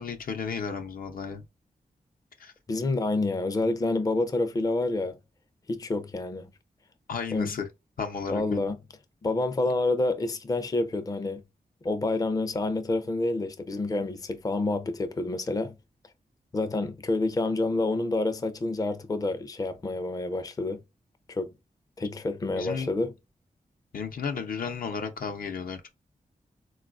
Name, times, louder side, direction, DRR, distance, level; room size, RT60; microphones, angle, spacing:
voice 1, 0.0-1.4 2.4-2.5 7.1-7.7 8.0-8.7 22.5-22.9 23.9-25.9, left 6 dB, 75° left, 0.6 m, -33 dB
voice 2, 2.7-5.1 5.7-6.5 7.3-7.5 8.3-8.8 9.2-11.4 11.8-15.7 16.5-20.8 21.3-21.5 22.0-23.1, left 2 dB, 25° left, 0.4 m, -28 dB
3.9 x 2.3 x 2.3 m
wide cardioid pair, 90°, 15 cm